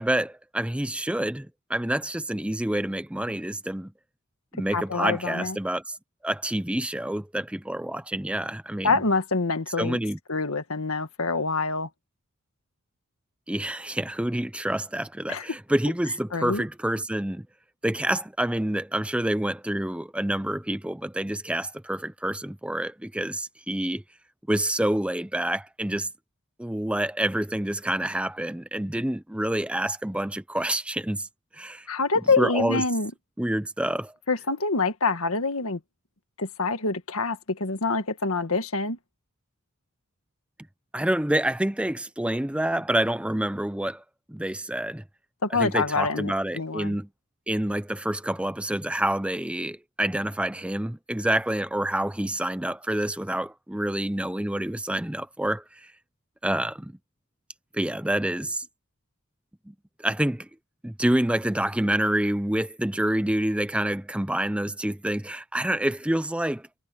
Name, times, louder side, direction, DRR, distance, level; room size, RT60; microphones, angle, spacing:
voice 1, 0.0-3.9 4.5-6.0 6.2-9.0 9.8-10.2 13.5-17.5 17.8-24.0 24.5-26.1 26.6-31.3 31.5-31.9 32.4-32.8 33.4-34.1 40.9-44.0 44.3-45.0 45.5-47.1 47.5-55.9 56.4-57.0 57.7-58.7 59.7-60.5 60.8-66.7, right 1 dB, 5° right, 0.6 m, -27 dB
voice 2, 4.7-5.6 8.8-10.0 10.3-11.9 15.3-15.4 16.3-16.6 31.9-33.1 34.3-35.8 36.4-39.0 45.4-47.0, left 3 dB, 70° left, 1.8 m, -26 dB
head